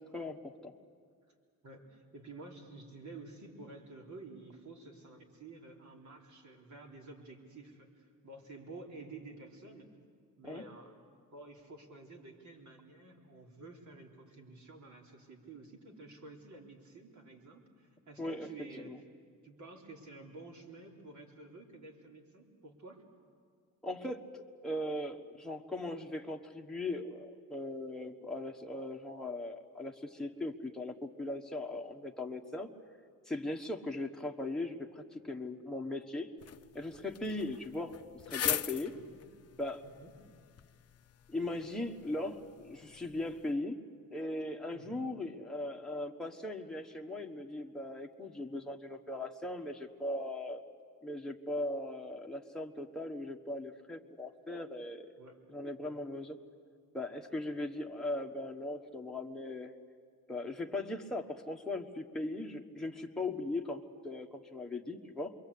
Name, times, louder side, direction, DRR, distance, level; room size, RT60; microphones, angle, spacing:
voice 1, 0.1-0.7 10.5-10.6 18.2-18.5 18.8-19.0 23.8-32.7 33.3-36.3 36.7-37.9 38.3-39.0 39.6-39.9 41.3-43.8 44.1-50.6 51.0-55.1 55.5-56.4 56.9-59.8 60.3-65.3, left 2 dB, ahead, 1 dB, 1.3 m, -39 dB
voice 2, 1.6-9.9 10.4-10.9 11.3-18.9 19.4-23.0 38.9-39.2 39.8-40.1 44.7-45.0 55.2-55.4 55.8-56.0, right 3 dB, 55° right, 1 dB, 3.7 m, -51 dB
sound 1, 36.4-43.5, left 10 dB, 45° left, 0.6 m, -42 dB
27.5 x 23.0 x 8.5 m, 2.1 s
cardioid pair, 130°, 34 cm